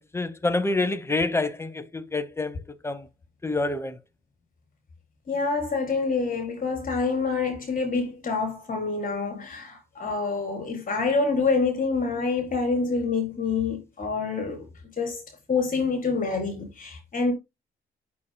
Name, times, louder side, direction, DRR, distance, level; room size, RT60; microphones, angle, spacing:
voice 1, 0.0-2.6 2.8-3.1 3.4-4.0, left 2 dB, 15° left, 1.0 m, -27 dB
voice 2, 5.3-14.7 15.0-17.3, left 4 dB, 45° left, 4.2 m, -27 dB
8.4 x 6.8 x 2.2 m
cardioid pair, 90°, 20 cm